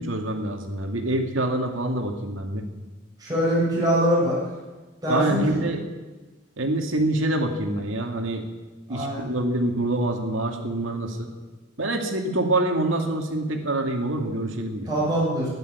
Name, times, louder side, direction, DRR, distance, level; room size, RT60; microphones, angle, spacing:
voice 1, 0.0-2.6 5.1-5.8 6.6-8.4 8.9-11.3 11.8-14.9, right 1 dB, 90° right, 3 dB, 2.4 m, -26 dB
voice 2, 3.2-4.4 5.0-5.6 8.9-9.2 14.9-15.5, equal, 20° right, -6 dB, 7.3 m, -23 dB
13.0 x 10.5 x 9.7 m, 1.3 s
head